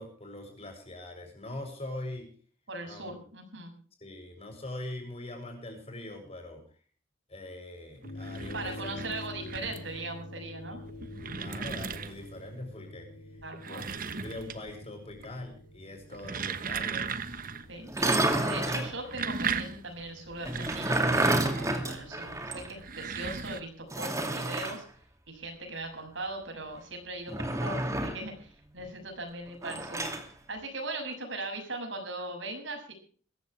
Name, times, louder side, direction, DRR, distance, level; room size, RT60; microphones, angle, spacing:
voice 1, 0.0-2.3 2.8-3.1 4.0-6.6 7.3-8.9 10.7-10.8 11.3-13.1 13.6-13.9 14.2-17.2, left 1 dB, 30° left, 4 dB, 7.1 m, -42 dB
voice 2, 2.7-3.7 8.5-10.8 13.4-13.8 17.7-24.8 25.3-30.1 30.5-32.9, right 2 dB, 75° right, 4 dB, 6.7 m, -39 dB
sound 1, 8.0-22.6, left 2 dB, 75° left, 4.6 m, -47 dB
sound 2, 8.0-10.0 10.7-12.4 13.4-14.8 15.1-15.6 16.0-17.7 18.0-18.1 18.8-21.9 22.7-23.6, right 5 dB, 45° right, 1.2 m, -37 dB
sound 3, 17.8-18.9 20.4-22.7 23.0-23.1 23.9-24.8 27.3-28.3 29.6-30.2, right 2 dB, 15° right, 2.5 m, -29 dB
21.5 x 15.5 x 3.4 m, 0.43 s
head